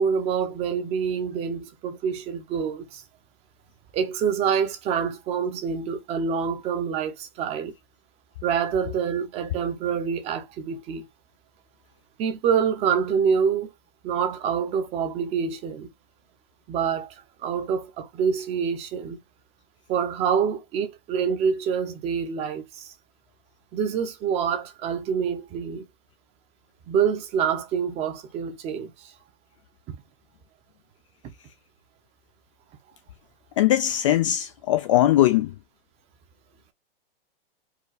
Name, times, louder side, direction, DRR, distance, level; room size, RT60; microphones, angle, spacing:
voice 1, 0.0-3.0 3.9-7.7 8.4-11.1 12.2-13.7 14.0-15.9 16.7-19.2 19.9-22.9 23.7-25.8 26.9-29.1 29.9-30.0 31.2-31.3, right 7 dB, 20° right, 0.8 m, -26 dB
voice 2, 33.6-35.5, left 13 dB, 35° left, 0.4 m, -20 dB
4.7 x 2.3 x 4.8 m
hypercardioid pair, 160°, 30 cm